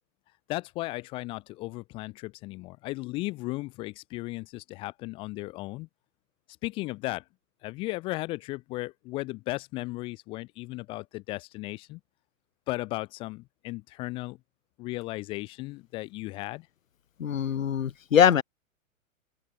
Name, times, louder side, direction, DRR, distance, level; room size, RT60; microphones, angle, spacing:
voice 1, 0.5-5.9 6.6-7.2 7.6-12.0 12.7-14.4 14.8-16.7, left 20 dB, 15° left, 0.4 m, -35 dB
voice 2, 17.2-18.4, left 8 dB, 80° left, 0.8 m, -22 dB
open air
figure-of-eight pair, 110°, 40 cm